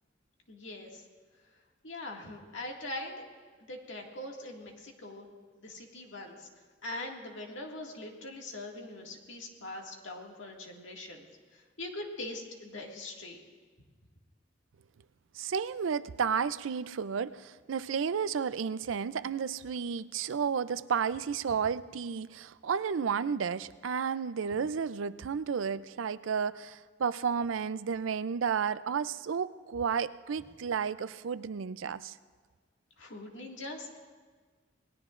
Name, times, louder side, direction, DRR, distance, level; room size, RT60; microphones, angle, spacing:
voice 1, 0.5-1.0 1.8-3.1 3.7-5.3 5.6-6.5 6.8-11.3 11.8-13.4 33.0-34.0, left 2 dB, 75° left, 2.1 m, -42 dB
voice 2, 15.3-32.2, right 6 dB, 90° right, 0.5 m, -32 dB
27.5 x 19.5 x 2.5 m
head